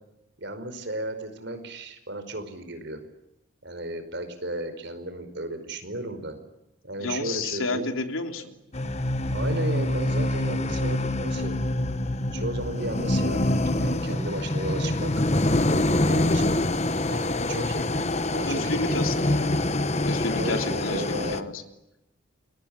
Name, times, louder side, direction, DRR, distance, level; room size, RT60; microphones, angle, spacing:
voice 1, 0.4-3.0 3.6-6.4 6.8-7.9 9.3-11.7 12.3-15.1 16.1-16.6 17.1-17.9 18.3-19.1 20.4-21.5, right 1 dB, 55° right, 9 dB, 5.1 m, -34 dB
voice 2, 7.0-8.5 18.5-19.6 20.0-21.6, left 3 dB, 80° left, 6 dB, 3.4 m, -31 dB
sound 1, 8.7-21.4, left 1 dB, 30° left, 1.2 m, -25 dB
29.5 x 22.5 x 8.9 m, 0.91 s
head